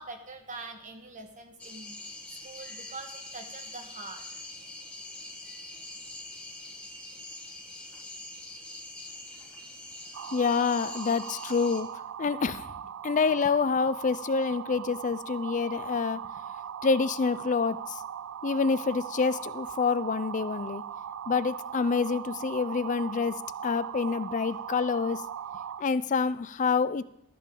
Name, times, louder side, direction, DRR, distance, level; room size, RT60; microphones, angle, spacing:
voice 1, 0.0-2.0 2.3-4.4 5.4-5.6, right 3 dB, 40° right, 5 dB, 1.4 m, -44 dB
sound 1, 1.6-11.8, left 2 dB, 5° left, 1.3 m, -44 dB
sound 2, 10.1-25.8, right 8 dB, 70° right, 0.4 m, -39 dB
voice 2, 10.3-11.9 12.2-12.7 13.0-16.2 16.8-18.0 18.4-20.8 21.3-25.2 25.8-27.0, left 5 dB, 40° left, 15 dB, 0.4 m, -27 dB
13.0 x 10.0 x 3.8 m, 0.72 s
head